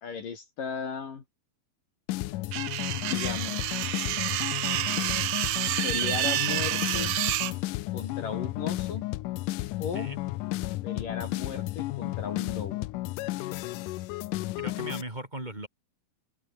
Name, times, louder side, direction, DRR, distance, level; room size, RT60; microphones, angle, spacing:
voice 1, 0.0-1.2 2.9-3.8 5.8-7.2 7.9-9.0 9.8-10.1 10.8-12.8, left 6 dB, 55° left, 4.7 m, -36 dB
sound 1, 2.1-15.0, left 18 dB, 85° left, 1.9 m, -33 dB
sound 2, 2.5-7.5, right 15 dB, 75° right, 1.8 m, -29 dB
voice 2, 14.6-15.7, right 1 dB, 10° right, 2.7 m, -38 dB
open air
omnidirectional pair, 4.6 m